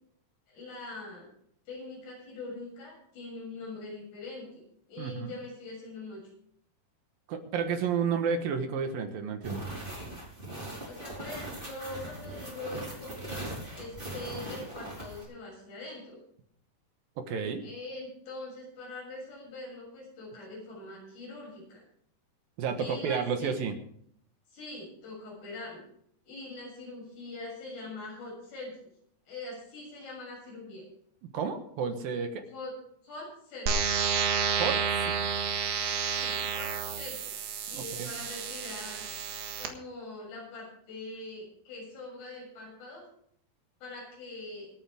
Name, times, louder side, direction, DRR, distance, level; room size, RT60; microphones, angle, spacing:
voice 1, 0.5-1.3 1.7-6.2 10.8-13.5 13.7-16.2 17.6-21.8 22.8-23.5 24.5-25.8 26.3-28.9 29.3-30.8 32.5-32.7 33.0-33.8 36.1-37.4 37.7-39.1 39.6-43.0 43.8-44.7, left 2 dB, 85° left, -3 dB, 9.1 m, -43 dB
voice 2, 5.0-5.3 7.3-9.6 17.2-17.6 22.6-23.7 31.3-32.4 34.5-35.1 37.7-38.1, right 6 dB, 65° right, 6 dB, 2.9 m, -31 dB
sound 1, 9.4-15.2, right 1 dB, 15° right, 4.1 m, -40 dB
sound 2, 33.7-39.7, right 6 dB, 90° right, 3.7 m, -30 dB
26.0 x 9.0 x 3.6 m, 0.67 s
omnidirectional pair, 4.6 m